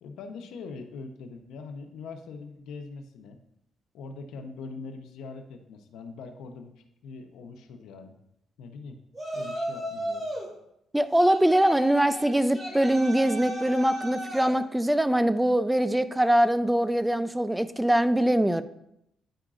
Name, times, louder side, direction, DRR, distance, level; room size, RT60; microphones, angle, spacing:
voice 1, 0.0-3.4 3.9-6.7 7.0-8.1 8.6-9.0 9.3-10.3, left 4 dB, 85° left, 5 dB, 0.8 m, -42 dB
Yell, 9.1-10.5 11.2-14.6, equal, 30° right, 2.1 m, -35 dB
voice 2, 10.9-18.6, right 1 dB, 5° right, 12 dB, 0.4 m, -23 dB
10.0 x 4.8 x 2.5 m, 0.79 s
cardioid pair, 90°, 0 cm